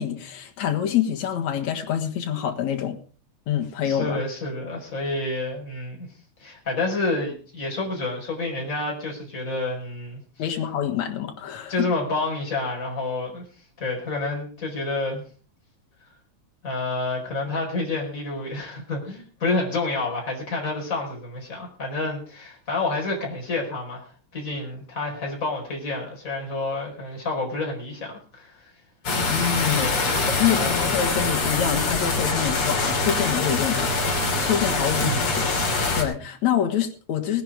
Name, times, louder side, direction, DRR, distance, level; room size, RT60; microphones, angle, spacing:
voice 1, 0.0-3.0 3.5-4.2 10.4-11.9 29.3-29.9 30.4-33.9 34.4-37.4, left 9 dB, 70° left, 4 dB, 2.8 m, -26 dB
voice 2, 3.8-6.1 6.4-10.2 11.7-13.4 13.8-15.2 16.6-28.7 29.7-30.2 30.5-30.8 34.8-35.2, left 2 dB, 25° left, -2 dB, 5.0 m, -29 dB
sound 1, 29.0-36.0, left 3 dB, 45° left, 3.6 m, -24 dB
19.0 x 10.0 x 5.0 m, 0.41 s
omnidirectional pair, 3.5 m